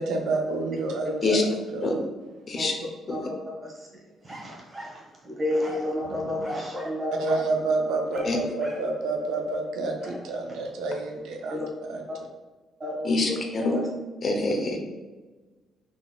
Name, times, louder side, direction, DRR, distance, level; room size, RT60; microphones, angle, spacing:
voice 1, 0.0-2.0 7.2-12.0, right 3 dB, 85° right, 2 dB, 0.5 m, -29 dB
voice 2, 2.6-7.4 11.5-11.7 12.8-13.4 13.7-13.9, left 1 dB, 35° right, -3 dB, 1.3 m, -32 dB
sound 1, 4.3-5.0 5.6-5.9 6.4-7.0 7.3-7.5 8.1-8.9 10.0-10.3, right 1 dB, 15° right, 1.1 m, -39 dB
voice 3, 13.0-13.8 14.2-14.8, left 3 dB, 45° left, 2 dB, 0.7 m, -25 dB
4.1 x 3.5 x 2.4 m, 1.3 s
cardioid pair, 90°, 0 cm